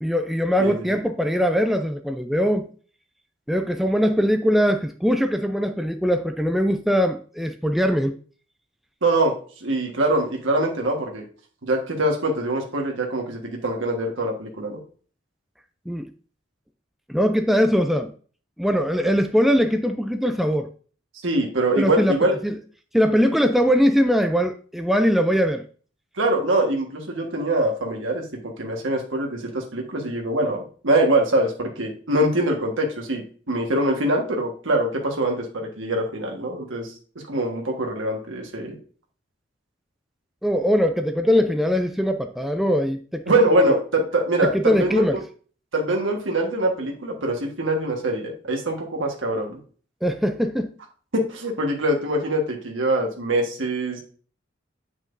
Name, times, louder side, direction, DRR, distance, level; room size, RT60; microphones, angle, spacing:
voice 1, 0.0-2.7 3.5-8.2 15.9-16.1 17.1-18.1 18.6-20.7 21.8-22.2 22.4-22.6 22.9-25.6 40.4-43.2 44.4-45.2 50.0-50.7, equal, ahead, 0.4 m, -21 dB
voice 2, 0.6-0.9 9.0-11.2 11.6-14.8 21.2-22.4 26.2-36.9 37.3-38.8 43.3-45.2 45.7-49.6 51.1-54.0, right 1 dB, 80° right, 1.5 m, -23 dB
7.9 x 6.0 x 2.6 m
head